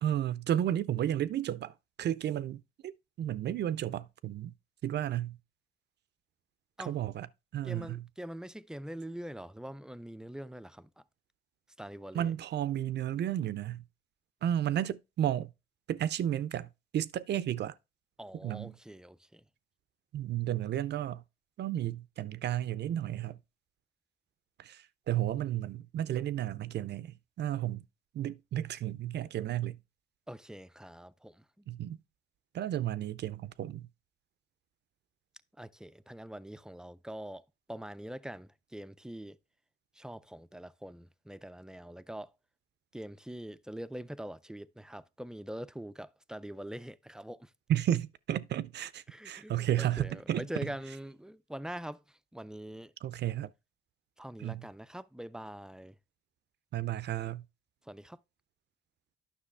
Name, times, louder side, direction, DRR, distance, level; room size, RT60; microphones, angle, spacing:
voice 1, 0.0-4.5 4.8-5.4 6.9-7.3 7.5-8.0 12.1-13.8 14.4-15.5 15.9-17.7 18.4-18.7 20.1-21.2 21.6-23.4 24.6-27.8 28.1-29.8 31.7-32.0 32.5-33.9 47.7-50.4 53.0-53.5 54.4-54.6 56.7-57.4, right 11 dB, 60° right, 0.5 m, -33 dB
voice 2, 7.6-11.0 11.8-12.3 18.2-19.4 30.3-31.7 35.6-39.4 39.9-42.3 42.9-47.5 49.1-52.9 54.2-56.0 57.9-58.2, right 1 dB, 5° right, 0.4 m, -44 dB
9.9 x 6.0 x 3.3 m
cardioid pair, 90°, 20 cm